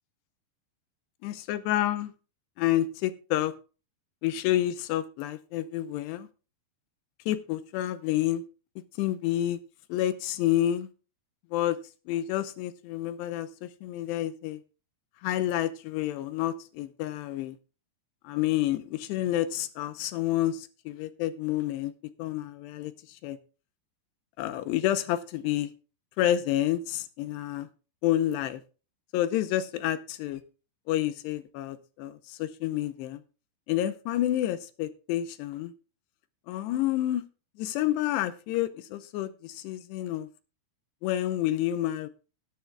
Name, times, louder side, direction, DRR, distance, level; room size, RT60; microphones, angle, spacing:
voice 1, 1.2-2.1 2.6-3.5 4.2-6.3 7.3-8.4 9.0-9.6 9.9-10.9 11.5-11.8 12.1-14.6 15.2-17.6 18.2-21.9 22.2-22.9 23.2-23.4 24.4-25.7 26.2-27.7 28.0-28.6 29.1-30.4 30.9-33.2 33.7-35.7 36.5-37.2 37.6-40.3 41.0-42.1, left 13 dB, 85° left, 12 dB, 2.9 m, -29 dB
19.5 x 9.7 x 2.3 m, 0.34 s
omnidirectional pair, 5.0 m